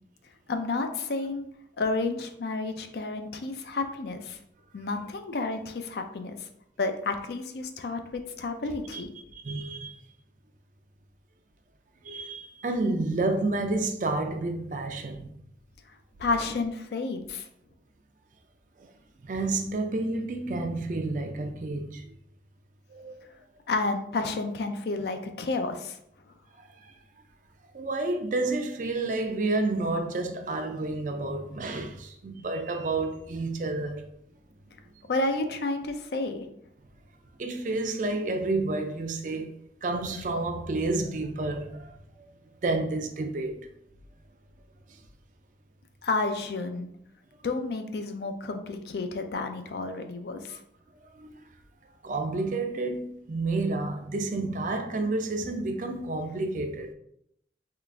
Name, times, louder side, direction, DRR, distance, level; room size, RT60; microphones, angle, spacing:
voice 1, 0.5-1.5 1.8-4.4 4.7-6.5 6.8-9.1 16.2-17.5 23.7-26.0 35.1-36.4 46.0-46.9 47.4-50.6, left 3 dB, 65° left, 0.4 m, -31 dB
voice 2, 9.3-10.1 12.0-15.3 18.8-18.9 19.2-22.1 22.9-23.2 26.6-26.9 27.7-34.0 37.4-39.6 39.8-41.9 42.6-43.6 51.1-51.4 52.0-56.9, right 2 dB, 45° right, 0.4 m, -30 dB
3.7 x 2.4 x 3.3 m
head